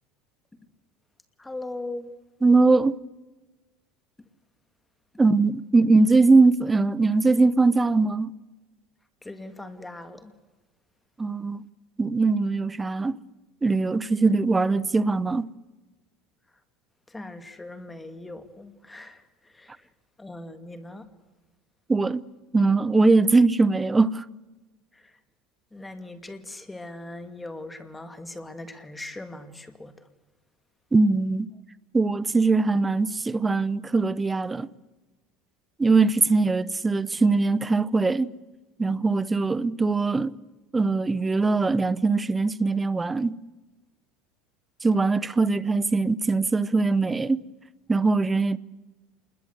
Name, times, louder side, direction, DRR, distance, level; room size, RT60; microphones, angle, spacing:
voice 1, 1.4-2.1 9.2-10.3 17.1-19.9 20.2-21.1 24.9-25.2 25.7-30.1, left 2 dB, 10° left, 2.3 m, -40 dB
voice 2, 2.4-3.0 5.2-8.3 11.2-11.6 12.0-13.2 13.6-15.5 21.9-22.2 22.5-24.2 30.9-31.5 31.9-34.7 35.8-38.3 38.8-40.3 40.7-43.3 44.8-47.4 47.9-48.6, right 3 dB, 15° right, 0.7 m, -21 dB
27.5 x 21.0 x 8.1 m
supercardioid pair, 120°, 0 cm